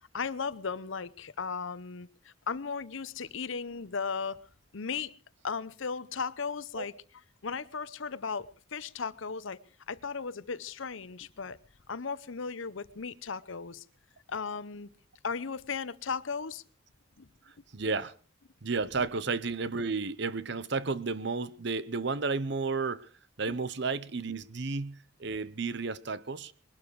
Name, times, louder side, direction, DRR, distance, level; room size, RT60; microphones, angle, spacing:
voice 1, 0.1-4.4 4.7-5.1 5.4-6.9 7.4-9.6 9.9-11.6 11.9-13.8 14.3-14.9 15.2-16.6 17.2-17.3 19.0-19.1 23.5-23.6, left 5 dB, 70° left, 0.8 m, -36 dB
voice 2, 17.7-18.1 18.6-23.1 23.4-26.5, right 4 dB, 55° right, 0.8 m, -32 dB
21.5 x 12.0 x 4.7 m
head